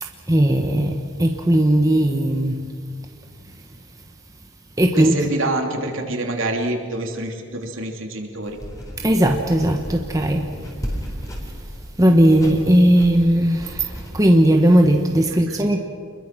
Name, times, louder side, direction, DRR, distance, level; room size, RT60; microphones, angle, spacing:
voice 1, 0.0-2.6 4.8-5.1 9.0-10.5 12.0-15.8, right 1 dB, 15° right, 3 dB, 1.1 m, -17 dB
voice 2, 4.9-8.6 15.5-15.7, right 2 dB, 65° right, 2 dB, 3.2 m, -26 dB
sound 1, 8.4-14.1, equal, 15° left, 4.1 m, -35 dB
28.5 x 22.0 x 6.1 m, 2.2 s
head